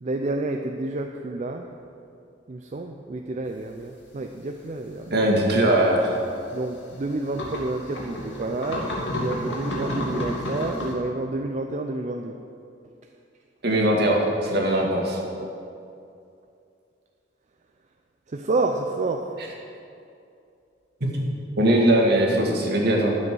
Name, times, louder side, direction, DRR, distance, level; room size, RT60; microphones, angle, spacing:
voice 1, 0.0-1.7 2.5-5.1 6.5-12.4 15.4-15.5 18.3-19.4, right 2 dB, 40° right, 4 dB, 0.5 m, -29 dB
sound 1, 3.7-3.8 5.0-5.1 5.4-10.9, left 1 dB, 80° left, 2.4 m, -31 dB
voice 2, 5.1-6.2 13.6-15.2 21.0-23.1, right 1 dB, 60° right, 0 dB, 1.9 m, -21 dB
11.0 x 7.7 x 6.2 m, 2.5 s
head